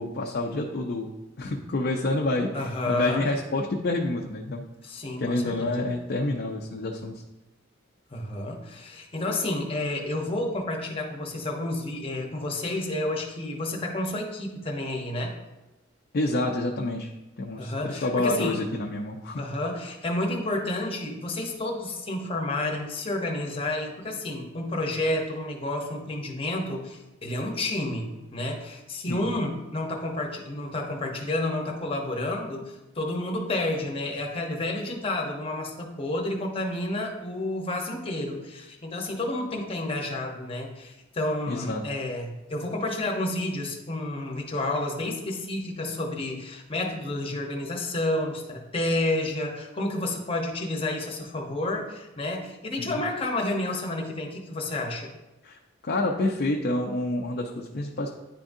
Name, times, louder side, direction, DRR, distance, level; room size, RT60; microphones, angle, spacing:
voice 1, 0.0-2.5 2.9-4.6 5.2-7.2 16.1-17.1 17.4-19.4 29.1-29.2 41.5-41.8 52.8-53.0 55.4-58.1, left 2 dB, 50° left, 0 dB, 0.5 m, -28 dB
voice 2, 2.5-3.3 4.8-5.9 8.1-15.4 17.6-18.6 19.3-55.1, left 1 dB, 30° left, 1 dB, 0.8 m, -30 dB
9.8 x 3.6 x 2.6 m, 1.0 s
head